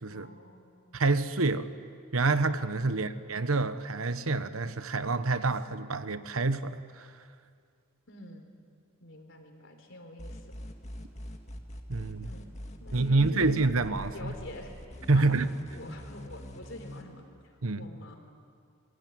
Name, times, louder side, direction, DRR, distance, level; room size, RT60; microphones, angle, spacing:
voice 1, 0.1-1.1 2.9-3.2 8.1-8.5 9.0-10.6 12.2-12.5 12.8-13.6 14.1-15.3 15.7-18.1, left 1 dB, 60° left, 5 dB, 3.8 m, -47 dB
voice 2, 0.9-1.7 2.1-7.1 11.9-12.3 12.9-14.3 15.1-15.5 17.6-17.9, right 3 dB, 80° right, 12 dB, 1.1 m, -27 dB
sound 1, 10.2-17.0, equal, 30° left, 2.0 m, -43 dB
27.0 x 21.5 x 9.5 m, 2.3 s
head